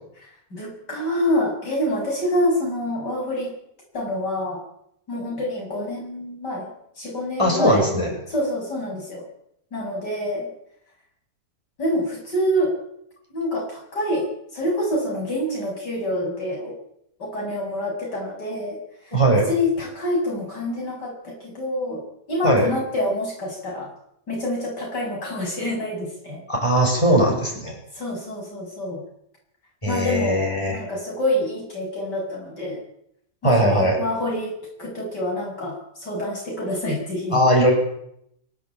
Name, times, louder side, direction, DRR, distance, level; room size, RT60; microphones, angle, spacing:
voice 1, 0.5-3.5 3.9-4.6 5.1-6.7 7.0-7.9 8.3-9.2 9.7-10.5 11.8-12.8 13.3-16.8 17.2-19.2 19.5-23.9 24.3-26.4 27.9-29.0 29.9-32.8 33.4-37.4, left 1 dB, 80° left, -1 dB, 8.7 m, -27 dB
voice 2, 7.4-8.1 19.1-19.5 22.4-22.7 26.5-27.8 29.8-30.8 33.4-34.0 37.3-37.7, equal, 15° left, -1 dB, 8.0 m, -19 dB
23.5 x 17.0 x 9.0 m, 0.74 s
omnidirectional pair, 1.8 m